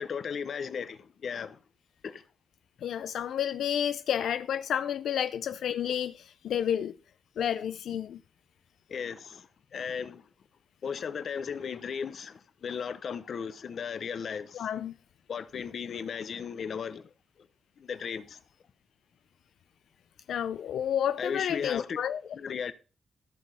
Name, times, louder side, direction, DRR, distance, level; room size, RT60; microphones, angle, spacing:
voice 1, 0.0-1.6 2.0-2.2 8.9-10.3 10.8-14.7 15.3-17.1 17.4-17.5 17.8-18.4 21.2-22.0 22.3-22.7, left 6 dB, 50° left, 0.9 m, -36 dB
voice 2, 2.8-7.0 7.4-8.2 14.5-14.9 20.3-22.2, left 9 dB, 80° left, 0.5 m, -30 dB
14.5 x 6.3 x 5.6 m
wide cardioid pair, 180°, 0 cm